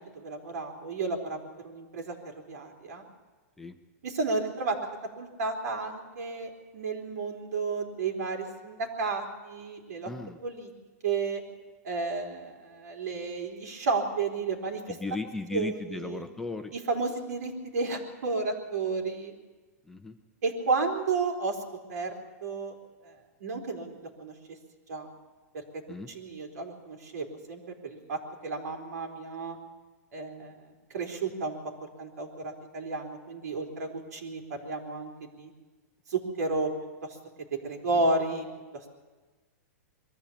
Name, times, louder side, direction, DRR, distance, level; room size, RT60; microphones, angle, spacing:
voice 1, 0.0-3.1 4.0-4.8 5.2-10.1 10.4-10.7 11.0-11.4 11.8-14.8 15.5-16.2 16.7-19.3 20.4-21.6 21.9-22.7 23.0-23.1 23.4-24.3 24.9-25.1 25.5-25.8 26.1-29.6 30.1-30.6 30.9-31.6 32.0-35.5 36.1-36.7 37.5-38.5, right 3 dB, 75° right, 3 dB, 3.9 m, -32 dB
voice 2, 10.0-10.4 14.9-16.7 19.9-20.2 25.9-26.1 37.9-38.0, left 3 dB, 5° left, 5 dB, 0.9 m, -36 dB
22.5 x 14.0 x 8.7 m, 1.3 s
hypercardioid pair, 150°, 9 cm